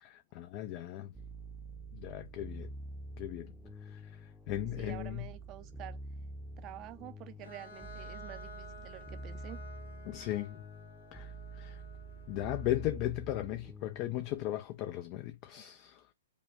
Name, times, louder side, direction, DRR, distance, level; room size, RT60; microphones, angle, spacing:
voice 1, 0.0-1.1 1.9-2.7 3.2-3.5 3.9-4.0 4.5-5.3 10.1-10.6 11.1-11.3 11.6-11.8 12.3-16.0, left 14 dB, 40° left, 0.4 m, -37 dB
sound 1, 1.1-14.5, right 2 dB, ahead, 0.8 m, -47 dB
voice 2, 4.8-6.0 6.6-9.6, right 15 dB, 30° right, 0.6 m, -48 dB
Bowed string instrument, 7.4-13.0, left 3 dB, 75° left, 1.9 m, -52 dB
5.2 x 2.2 x 4.6 m
hypercardioid pair, 120°, 0 cm